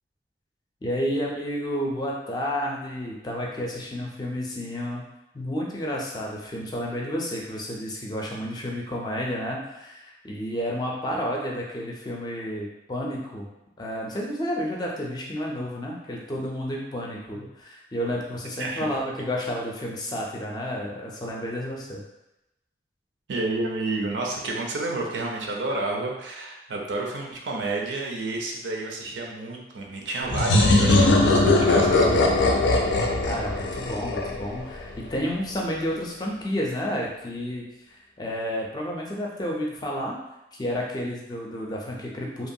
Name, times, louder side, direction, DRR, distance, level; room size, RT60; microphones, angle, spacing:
voice 1, 0.8-5.0 5.3-13.5 13.8-22.0 33.2-37.6 38.2-40.2 40.5-42.5, equal, 20° left, -2 dB, 0.4 m, -31 dB
voice 2, 23.3-32.2, right 2 dB, 90° right, -1 dB, 0.5 m, -30 dB
sound 1, 30.3-34.9, left 2 dB, 90° left, 0.4 m, -20 dB
2.8 x 2.2 x 2.6 m, 0.92 s
head